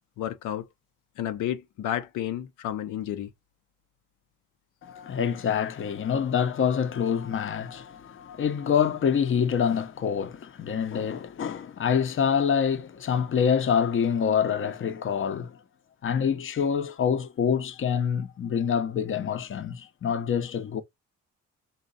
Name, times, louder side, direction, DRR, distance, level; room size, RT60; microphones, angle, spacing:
voice 1, 0.2-0.7 1.2-3.3, left 11 dB, 80° left, 0.7 m, -31 dB
voice 2, 4.8-15.5 16.0-20.8, left 7 dB, 40° left, 0.7 m, -26 dB
3.8 x 2.4 x 3.9 m
cardioid pair, 90°, 30 cm